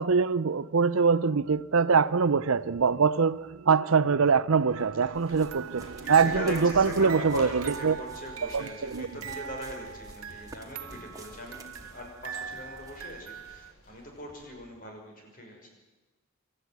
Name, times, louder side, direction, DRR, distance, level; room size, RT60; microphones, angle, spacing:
voice 1, 0.0-7.5 7.8-7.9 8.9-9.1, right 5 dB, 70° right, 0.6 m, -23 dB
sound 1, 4.5-14.5, equal, 85° left, 7.4 m, -56 dB
sound 2, 5.1-13.2, right 2 dB, 15° right, 2.0 m, -50 dB
sound 3, 5.4-13.7, right 7 dB, 90° right, 1.1 m, -42 dB
voice 2, 6.0-15.7, left 1 dB, 40° left, 6.0 m, -41 dB
26.5 x 13.5 x 9.6 m
head